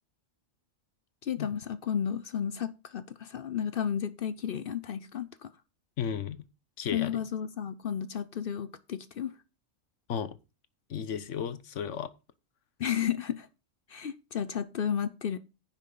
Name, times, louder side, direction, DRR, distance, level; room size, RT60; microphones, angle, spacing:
voice 1, 1.2-5.5 6.9-9.3 12.8-13.5 13.9-15.4, left 8 dB, 55° left, 0.7 m, -32 dB
voice 2, 6.0-6.4 6.8-7.2 10.1-10.4 10.9-12.1, left 8 dB, 70° left, 1.2 m, -34 dB
10.0 x 7.2 x 3.8 m
omnidirectional pair, 1.3 m